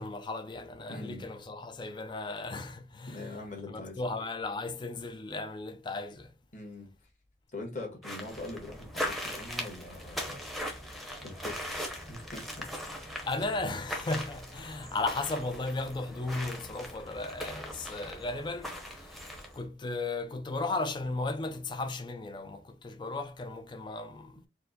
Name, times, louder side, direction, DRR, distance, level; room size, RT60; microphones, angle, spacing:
voice 1, 0.0-3.4 3.7-6.3 13.3-24.5, left 2 dB, 25° left, 0.4 m, -35 dB
voice 2, 0.9-1.2 3.1-4.0 6.5-6.9 7.5-10.4 11.2-11.8 12.1-12.7 12.9-13.3, left 2 dB, 45° left, 1.4 m, -42 dB
sound 1, 8.0-19.6, equal, ahead, 0.7 m, -40 dB
4.4 x 2.1 x 4.0 m
head